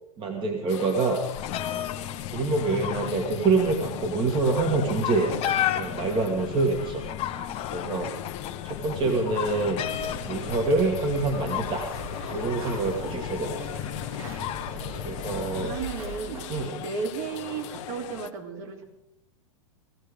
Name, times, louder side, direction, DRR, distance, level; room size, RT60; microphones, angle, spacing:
voice 1, 0.2-1.2 2.3-7.0 7.7-8.1 8.6-9.8 10.3-11.9 12.3-13.7 15.0-15.7 16.5-16.8, right 3 dB, 30° right, 2 dB, 2.0 m, -26 dB
sound 1, 0.7-18.3, left 12 dB, 55° left, 1.1 m, -40 dB
sound 2, 1.4-15.8, left 11 dB, 35° left, 1.1 m, -34 dB
sound 3, 9.9-16.5, right 3 dB, 80° right, 5.2 m, -40 dB
voice 2, 15.6-16.4 16.8-18.8, right 5 dB, 50° right, 1 dB, 3.5 m, -34 dB
17.5 x 14.0 x 5.2 m, 0.83 s
hypercardioid pair, 120°, 18 cm